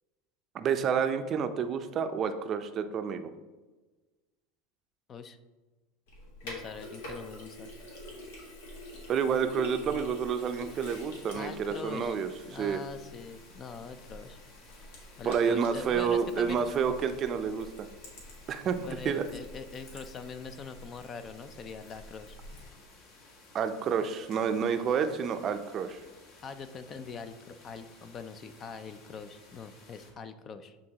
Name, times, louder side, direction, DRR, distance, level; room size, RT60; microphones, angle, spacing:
voice 1, 0.5-3.3 9.1-12.8 15.2-17.7 18.5-18.8 19.0-19.2 23.5-26.0, right 7 dB, 40° right, 9 dB, 0.5 m, -29 dB
Sink (filling or washing), 6.1-22.7, left 1 dB, 85° left, 1.6 m, -47 dB
voice 2, 6.4-7.7 11.3-12.2 12.5-14.4 15.2-16.6 18.8-22.4 26.4-30.8, left 5 dB, 35° left, 11 dB, 0.4 m, -43 dB
sound 1, 10.4-30.1, left 3 dB, 55° left, 1.3 m, -56 dB
8.6 x 3.9 x 2.9 m, 1.2 s
supercardioid pair, 120°, 0 cm